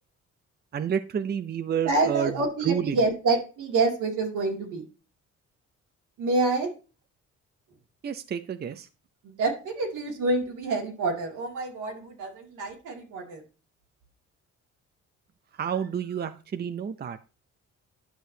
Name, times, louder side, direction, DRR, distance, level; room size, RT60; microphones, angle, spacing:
voice 1, 0.7-2.4 2.6-3.0 8.0-8.9 15.6-17.2, right 8 dB, 35° right, 10 dB, 0.6 m, -29 dB
voice 2, 1.8-4.9 6.2-6.7 9.2-13.4, right 3 dB, 85° right, 0 dB, 2.4 m, -27 dB
10.5 x 6.2 x 2.8 m, 0.33 s
cardioid pair, 90°, 30 cm